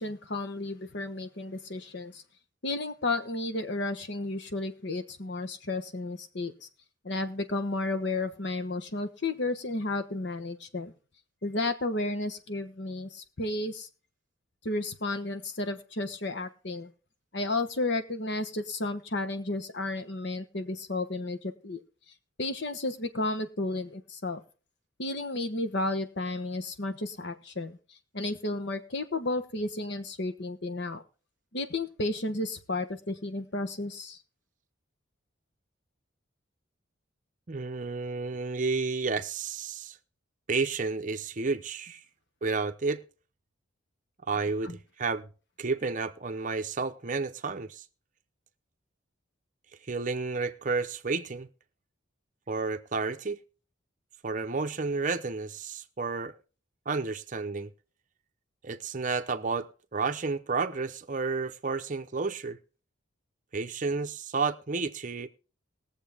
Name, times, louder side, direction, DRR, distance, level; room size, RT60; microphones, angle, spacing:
voice 1, 0.0-2.2 2.6-6.7 7.0-10.9 11.4-13.9 14.6-16.9 17.3-21.8 22.4-24.4 25.0-27.8 28.1-31.0 31.5-34.2 44.6-44.8, left 2 dB, 60° left, 1.2 m, -32 dB
voice 2, 37.5-40.0 40.5-42.0 42.4-43.0 44.3-45.3 45.6-47.8 49.9-51.5 52.5-53.4 54.2-56.3 56.9-57.7 58.6-62.6 63.5-65.3, right 4 dB, 40° right, 0.7 m, -31 dB
20.5 x 7.3 x 3.5 m
head